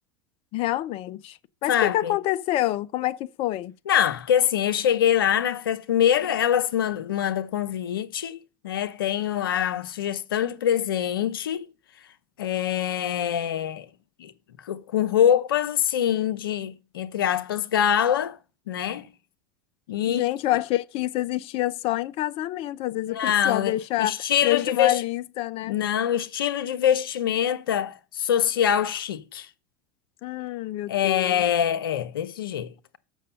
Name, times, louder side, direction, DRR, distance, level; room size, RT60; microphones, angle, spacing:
voice 1, 0.5-3.7 20.1-24.1 24.4-25.8 30.2-31.4, left 15 dB, 55° left, 0.7 m, -27 dB
voice 2, 1.7-2.1 3.9-11.7 12.4-13.9 14.2-14.3 14.6-18.4 18.7-19.1 19.9-20.3 23.1-23.7 24.0-25.0 25.7-29.5 30.9-33.0, left 10 dB, 90° left, 0.9 m, -24 dB
7.4 x 6.2 x 5.6 m
hypercardioid pair, 95°, 12 cm